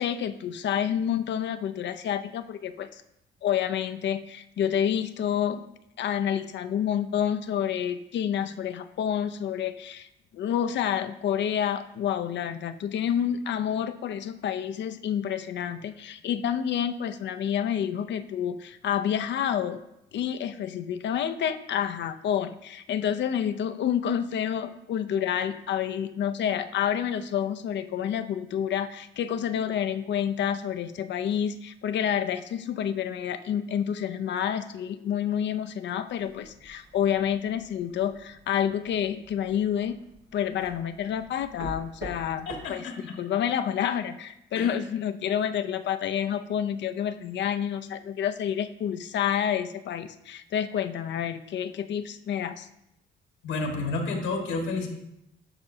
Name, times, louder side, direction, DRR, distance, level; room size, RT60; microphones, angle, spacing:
voice 1, 0.0-3.0 3.4-5.6 6.0-10.1 10.3-19.8 20.1-40.0 40.3-42.9 43.2-52.7, left 9 dB, 65° left, 10 dB, 0.6 m, -29 dB
sound 1, 36.1-42.7, right 1 dB, 55° right, 2.4 m, -46 dB
voice 2, 42.4-43.1 44.5-44.8 53.4-54.9, left 3 dB, 85° left, 2 dB, 1.7 m, -30 dB
12.0 x 5.2 x 2.7 m, 0.83 s
cardioid pair, 90°, 20 cm